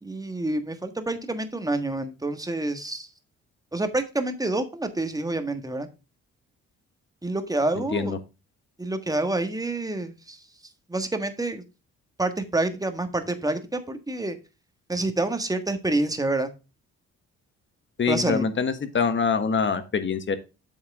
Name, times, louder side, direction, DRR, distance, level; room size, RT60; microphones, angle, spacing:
voice 1, 0.0-3.1 3.7-5.9 7.2-8.1 8.8-10.4 10.9-11.6 12.2-14.4 14.9-16.5 18.1-18.5, right 2 dB, 10° right, 8 dB, 1.5 m, -27 dB
voice 2, 7.7-8.2 18.0-20.4, left 5 dB, 40° left, 10 dB, 1.4 m, -25 dB
8.4 x 6.3 x 3.6 m, 0.29 s
cardioid pair, 90°, 30 cm